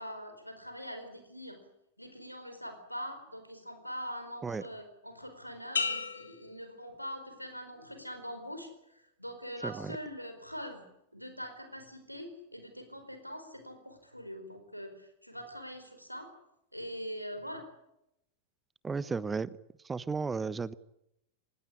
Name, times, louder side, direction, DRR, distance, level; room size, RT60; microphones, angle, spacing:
voice 1, 0.0-1.6 2.0-10.8 11.1-16.3 16.7-17.7, equal, 90° left, 7 dB, 4.7 m, -43 dB
sound 1, 5.8-7.5 8.0-8.5, left 5 dB, 70° left, 3.6 m, -36 dB
voice 2, 9.6-10.0 18.8-19.6 19.8-20.7, right 4 dB, 15° right, 19 dB, 1.1 m, -34 dB
25.0 x 19.5 x 10.0 m, 0.81 s
figure-of-eight pair, 90°, 0 cm